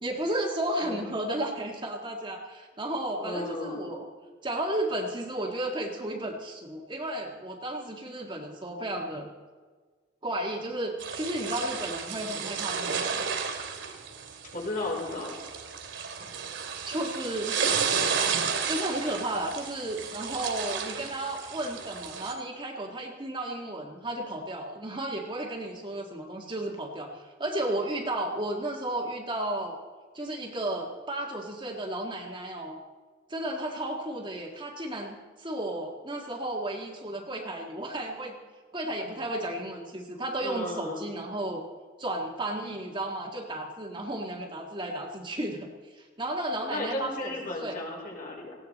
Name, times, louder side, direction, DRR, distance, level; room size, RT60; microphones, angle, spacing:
voice 1, 0.0-4.1 4.4-9.3 10.2-13.1 16.9-17.6 18.7-29.8 30.1-32.8 33.3-38.4 38.7-41.6 42.0-47.8, right 1 dB, 25° right, 0 dB, 1.8 m, -33 dB
voice 2, 3.2-3.9 14.5-15.3 40.4-41.1 46.7-48.6, left 1 dB, 45° left, -3 dB, 5.3 m, -34 dB
sound 1, 11.0-22.3, right 6 dB, 70° right, 2.7 m, -32 dB
19.0 x 16.5 x 4.2 m, 1.4 s
head